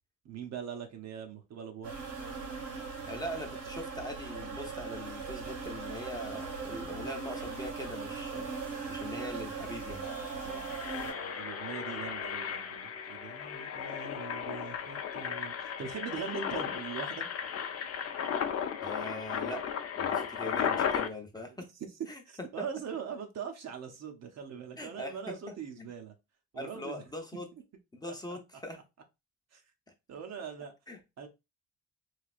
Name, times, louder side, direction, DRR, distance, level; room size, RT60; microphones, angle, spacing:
voice 1, 0.2-1.9 10.4-10.8 11.0-17.2 21.5-21.6 22.3-26.1 26.5-27.0 28.1-28.4 29.5-29.6 30.1-30.7 31.2-31.3, right 7 dB, 60° right, 0.8 m, -42 dB
sound 1, 1.8-11.1, right 5 dB, 80° right, 1.7 m, -39 dB
voice 2, 3.1-10.1 18.8-19.7 20.0-21.7 22.1-22.2 22.6-22.7 24.8-25.9 26.5-27.5 27.9-28.8 30.9-31.0, left 1 dB, 15° left, 0.7 m, -42 dB
Engine, 9.4-9.5 9.7-9.9 10.4-21.1, left 8 dB, 55° left, 0.6 m, -35 dB
sound 2, 10.0-14.3, right 2 dB, 35° left, 1.0 m, -49 dB
3.2 x 2.8 x 2.4 m
cardioid pair, 90°, 30 cm